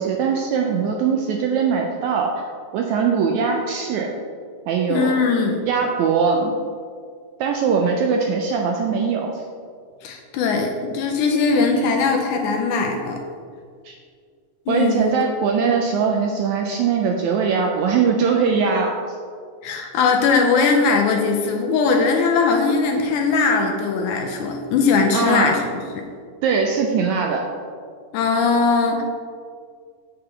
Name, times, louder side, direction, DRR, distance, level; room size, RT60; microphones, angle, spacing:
voice 1, 0.0-2.3 2.7-4.1 4.7-5.2 5.7-6.5 7.4-9.3 13.8-13.9 14.7-19.0 25.1-25.5 26.4-27.4, right 5 dB, 80° right, 1 dB, 1.7 m, -21 dB
voice 2, 4.9-5.6 10.0-13.2 14.7-15.3 19.6-26.1 28.1-29.0, left 4 dB, 80° left, 2 dB, 2.0 m, -20 dB
7.7 x 6.8 x 3.2 m, 2.1 s
omnidirectional pair, 3.8 m